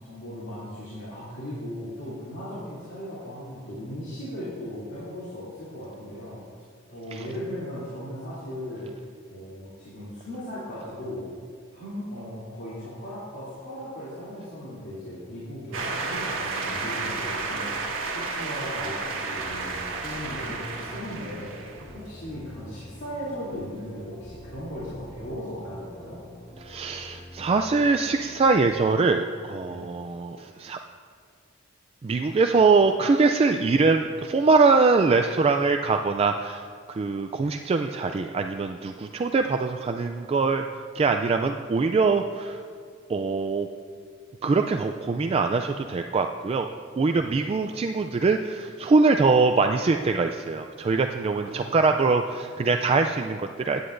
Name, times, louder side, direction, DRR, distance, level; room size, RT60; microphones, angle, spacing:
voice 1, 0.1-6.4 6.9-9.0 9.3-11.3 11.7-21.5 21.9-26.2 29.7-29.9 50.9-51.7, equal, 55° left, -11 dB, 2.9 m, -37 dB
sound 1, 15.7-22.5, right 3 dB, 75° right, 1.5 m, -32 dB
sound 2, 19.3-28.9, equal, 10° left, 1.3 m, -46 dB
voice 2, 26.6-30.8 32.0-40.6 40.9-42.6 43.1-43.7 44.4-46.7 47.0-53.8, right 4 dB, 30° right, 5 dB, 0.3 m, -23 dB
16.0 x 9.6 x 2.6 m, 2.1 s
head